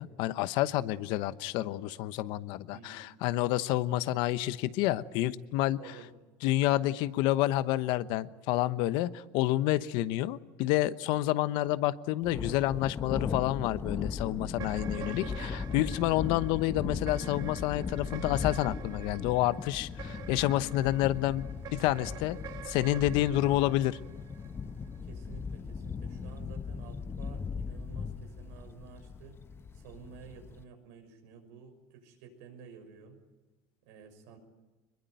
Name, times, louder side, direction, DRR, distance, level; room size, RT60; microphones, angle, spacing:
voice 1, 0.0-5.8 6.4-22.4 22.7-24.0, left 15 dB, 75° left, 15 dB, 1.0 m, -29 dB
voice 2, 2.7-3.1 5.8-6.1 25.0-29.4 29.7-33.2 33.8-34.4, right 7 dB, 85° right, 5 dB, 6.2 m, -51 dB
Thunder, 12.2-30.6, left 5 dB, 30° left, 1.1 m, -38 dB
sound 1, 14.6-25.0, right 11 dB, 55° right, 1.5 m, -47 dB
24.0 x 21.5 x 9.1 m, 1.2 s
supercardioid pair, 100°, 8 cm